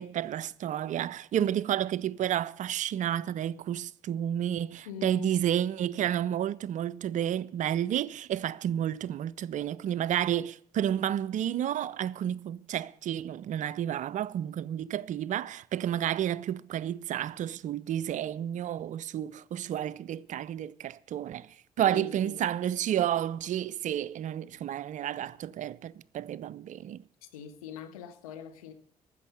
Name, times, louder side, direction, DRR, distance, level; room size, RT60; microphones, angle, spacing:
voice 1, 0.0-21.5 21.8-27.0, right 10 dB, 45° right, 0.4 m, -31 dB
voice 2, 4.8-5.3 21.8-22.4 27.3-28.7, left 8 dB, 75° left, 1.0 m, -42 dB
14.5 x 6.6 x 6.7 m
figure-of-eight pair, 45°, 18 cm